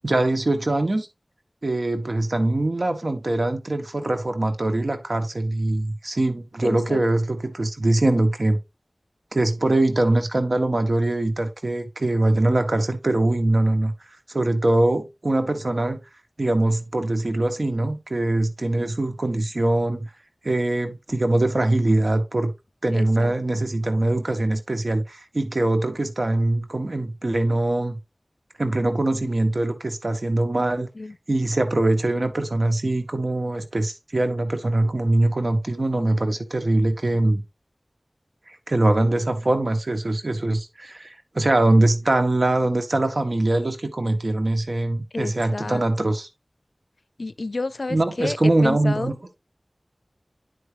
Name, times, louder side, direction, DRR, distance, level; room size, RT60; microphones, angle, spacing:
voice 1, 0.0-1.1 1.6-8.6 9.3-13.9 14.3-16.0 16.4-20.1 20.4-22.5 22.8-28.0 28.6-30.9 31.3-37.4 38.5-46.3 47.9-49.2, right 2 dB, 70° right, 1.4 m, -22 dB
voice 2, 6.6-7.0 18.8-18.9 22.9-23.3 31.0-31.2 45.1-45.8 47.2-48.4 48.6-49.1, left 3 dB, 85° left, 0.5 m, -30 dB
9.6 x 4.8 x 3.3 m
wide cardioid pair, 40°, 0 cm